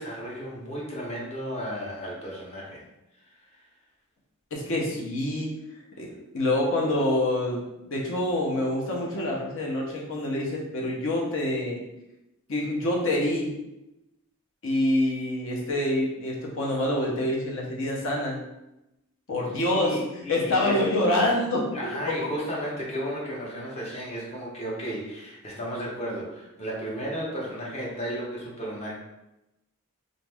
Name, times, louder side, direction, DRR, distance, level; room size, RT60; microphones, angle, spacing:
voice 1, 0.0-2.8 19.7-20.8 21.7-28.9, equal, 30° left, -4 dB, 0.8 m, -34 dB
voice 2, 4.5-5.5 6.0-6.1 6.3-7.6 7.9-11.8 12.5-13.6 14.6-18.4 19.3-21.7 22.2-22.3, left 1 dB, 60° left, -2 dB, 0.7 m, -26 dB
2.6 x 2.4 x 3.3 m, 0.92 s
head